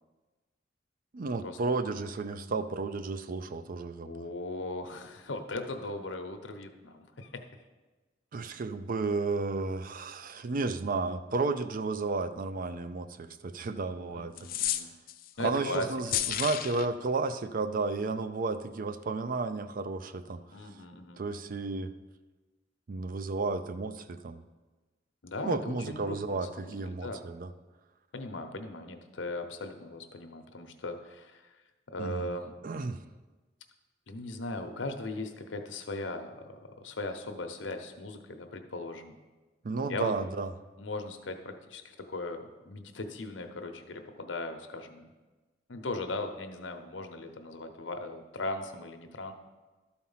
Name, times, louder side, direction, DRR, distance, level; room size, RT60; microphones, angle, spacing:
voice 1, 1.1-4.2 8.3-14.3 15.4-20.4 21.2-21.9 22.9-24.4 25.4-27.5 32.0-32.3 32.6-33.0 39.6-40.5, right 3 dB, 50° right, 11 dB, 0.5 m, -32 dB
voice 2, 4.0-7.4 14.1-14.9 15.4-15.9 20.5-21.2 25.2-27.2 28.1-31.6 31.9-32.5 34.1-39.1 39.9-40.2 40.8-45.1 45.7-49.3, left 2 dB, 80° left, 6 dB, 0.9 m, -38 dB
sound 1, 14.4-15.3 16.1-16.9, left 11 dB, 50° left, 0.4 m, -31 dB
12.5 x 4.4 x 5.6 m, 1.2 s
head